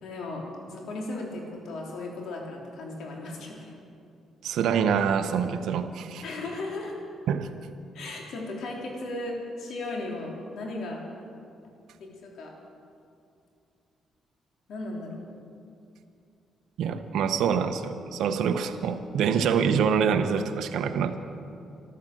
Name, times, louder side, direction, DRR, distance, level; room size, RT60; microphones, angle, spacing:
voice 1, 0.0-3.7 6.2-6.9 7.9-11.1 12.0-12.5 14.7-15.2, left 2 dB, 75° left, -1 dB, 3.3 m, -36 dB
voice 2, 4.4-6.2 7.3-7.5 16.8-21.2, right 7 dB, 75° right, 8 dB, 0.9 m, -25 dB
13.0 x 12.5 x 7.8 m, 2.5 s
cardioid pair, 90°, 0 cm